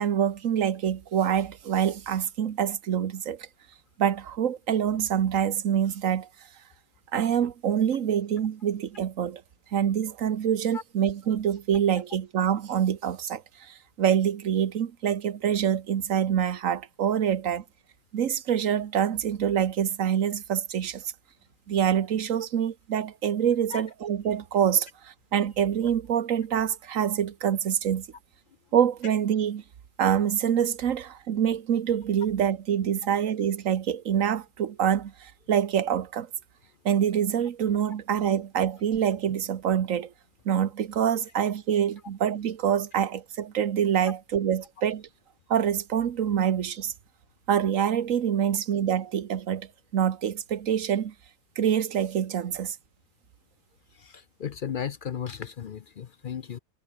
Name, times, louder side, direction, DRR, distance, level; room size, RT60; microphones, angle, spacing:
voice 1, 0.0-3.5 4.0-6.3 7.1-9.4 9.7-17.6 18.1-21.0 21.7-28.1 28.7-29.6 30.0-36.3 36.8-40.1 40.4-45.1 45.5-46.9 47.5-51.1 51.6-52.8, right 9 dB, 85° right, 1.4 m, -26 dB
voice 2, 54.0-56.6, left 8 dB, 55° left, 0.7 m, -35 dB
omnidirectional pair, 1.3 m